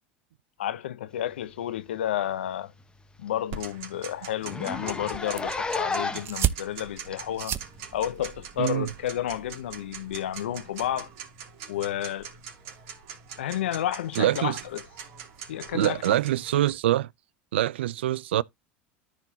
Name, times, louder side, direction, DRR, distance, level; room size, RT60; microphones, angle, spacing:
voice 1, 0.6-2.7 3.2-7.6 7.9-11.1 11.7-12.3 13.4-14.8 15.5-16.2, left 12 dB, 90° left, 0.7 m, -31 dB
Zipper (clothing), 1.8-2.0 2.3-2.4 2.8-2.9 3.3-3.4 3.6-3.8 4.4-6.4 7.1-7.2 8.2-8.3, left 3 dB, 15° left, 1.1 m, -32 dB
Tick-tock, 3.5-16.7, right 7 dB, 65° right, 2.8 m, -43 dB
sound 1, 5.1-10.1, right 11 dB, 40° right, 0.8 m, -34 dB
voice 2, 14.2-14.6 15.7-17.1 17.5-18.4, right 13 dB, 90° right, 0.4 m, -24 dB
13.5 x 4.6 x 2.8 m
hypercardioid pair, 95°, 6 cm